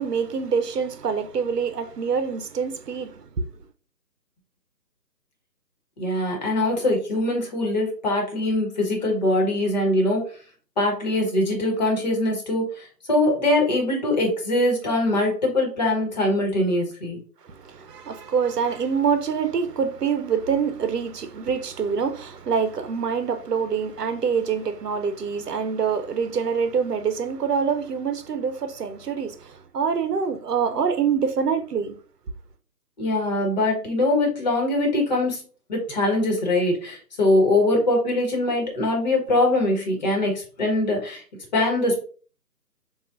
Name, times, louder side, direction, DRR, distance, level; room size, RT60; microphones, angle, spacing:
voice 1, 0.0-3.5 17.6-32.0, right 6 dB, 75° right, 0.8 m, -25 dB
voice 2, 6.0-10.2 10.8-17.2 33.0-35.4 35.7-41.2 41.5-42.0, left 1 dB, 25° left, 1.2 m, -22 dB
7.0 x 2.5 x 2.5 m
hypercardioid pair, 160°, 49 cm